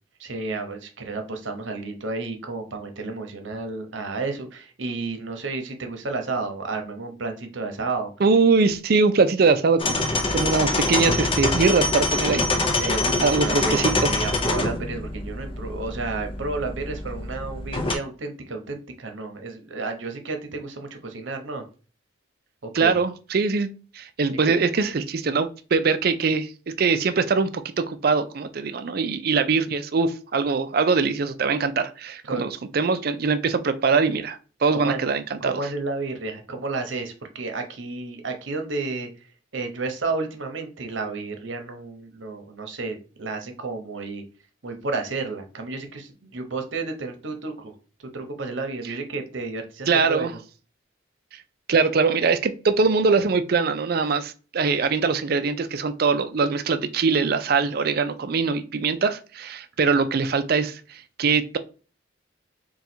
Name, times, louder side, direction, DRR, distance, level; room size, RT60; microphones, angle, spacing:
voice 1, 0.2-8.1 12.8-21.6 22.6-23.0 24.4-24.6 32.2-32.5 34.7-35.0 35.4-39.1 39.5-44.2 44.6-47.7 48.0-50.4, right 3 dB, 70° right, 5 dB, 0.8 m, -31 dB
voice 2, 8.2-10.1 10.3-12.5 13.2-14.1 22.7-23.7 23.9-26.5 26.8-35.6 49.9-50.3 51.7-61.6, right 4 dB, 50° right, 10 dB, 0.4 m, -22 dB
sound 1, 9.8-18.0, left 2 dB, 25° left, 0.5 m, -25 dB
3.8 x 2.3 x 4.3 m, 0.37 s
head